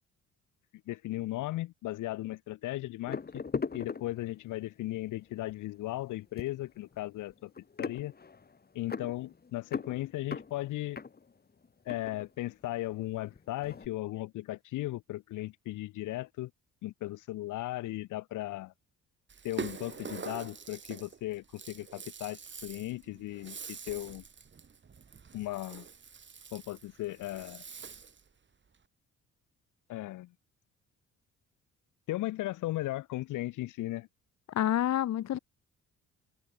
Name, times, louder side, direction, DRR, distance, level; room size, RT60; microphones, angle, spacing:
voice 1, 0.9-3.4 3.7-7.5 7.8-8.1 8.7-11.0 11.9-16.5 16.8-18.7 19.4-24.2 25.3-25.8 26.5-27.6 29.9-30.3 32.1-34.1, left 16 dB, 80° left, 0.9 m, -36 dB
sound 1, 3.1-4.7 5.3-5.5 5.8-13.0 13.2-13.9, left 5 dB, 30° left, 2.9 m, -40 dB
Rattle (instrument), 19.3-28.3, right 6 dB, 40° right, 3.3 m, -45 dB
voice 2, 34.5-35.4, left 12 dB, 60° left, 1.2 m, -28 dB
cardioid pair, 90°, 30 cm